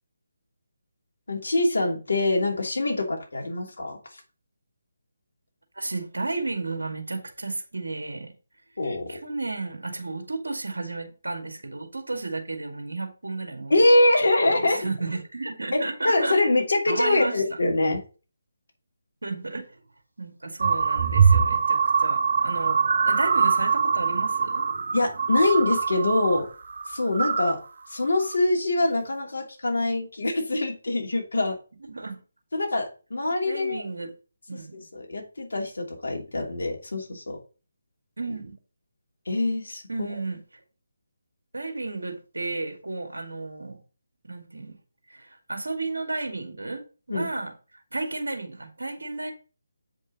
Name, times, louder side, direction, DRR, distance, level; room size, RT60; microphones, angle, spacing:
voice 1, 1.3-4.2 8.8-9.2 13.7-14.8 15.7-18.0 24.9-26.5 26.9-27.6 27.9-31.5 32.5-33.8 34.7-37.4 39.3-40.2 47.1-47.3, left 2 dB, 60° left, 2.8 m, -24 dB
voice 2, 5.8-8.3 9.1-13.7 14.5-16.4 16.9-17.4 19.2-19.6 20.2-24.6 31.9-32.2 33.4-34.1 34.5-34.8 38.2-38.5 39.9-40.4 41.5-43.8 44.2-44.8 45.1-47.5 47.9-49.3, right 3 dB, 70° right, 2.0 m, -33 dB
sound 1, 20.6-26.4 26.7-27.6 28.1-28.4, right 6 dB, 50° right, 1.0 m, -23 dB
8.1 x 5.3 x 4.1 m
figure-of-eight pair, 150°, 0 cm